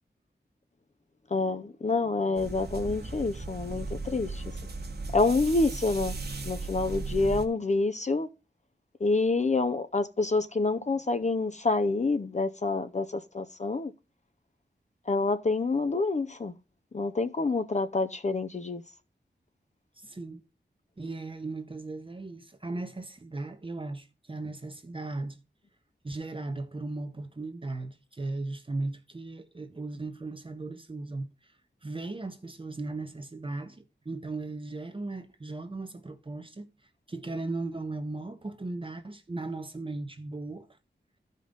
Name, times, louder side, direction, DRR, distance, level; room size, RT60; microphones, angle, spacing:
voice 1, 1.3-4.4 5.1-6.2 6.4-8.3 9.0-13.9 15.1-16.5 16.9-18.8, left 3 dB, 40° left, 0.6 m, -27 dB
sound 1, 2.3-7.5, right 3 dB, 60° right, 1.4 m, -36 dB
voice 2, 20.0-20.4 21.0-25.4 26.0-31.6 31.8-36.7 37.1-40.7, right 2 dB, 30° right, 0.9 m, -37 dB
13.0 x 5.3 x 3.8 m
wide cardioid pair, 85°, 18 cm